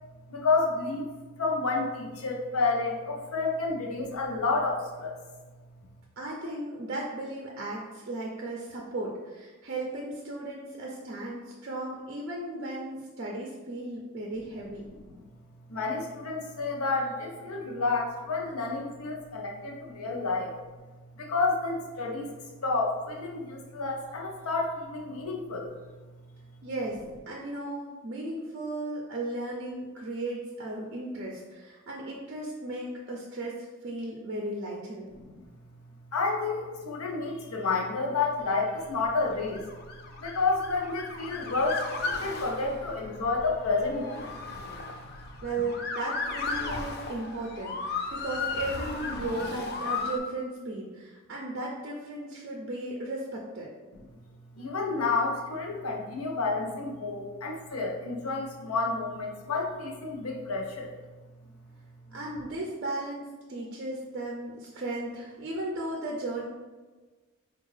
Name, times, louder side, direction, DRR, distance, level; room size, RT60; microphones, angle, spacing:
voice 1, 0.3-1.1 1.4-5.1 15.0-15.2 15.7-20.5 21.2-22.3 22.6-25.7 35.1-35.3 36.1-39.7 40.2-44.3 54.5-60.9, left 3 dB, 80° left, 0 dB, 0.7 m, -30 dB
voice 2, 6.2-14.9 26.6-27.0 27.3-35.1 45.4-53.7 62.1-66.5, right 2 dB, 50° right, -2 dB, 0.4 m, -35 dB
Motor vehicle (road) / Siren, 39.0-50.2, left 4 dB, 45° left, 0.3 m, -35 dB
4.4 x 2.3 x 3.2 m, 1.3 s
head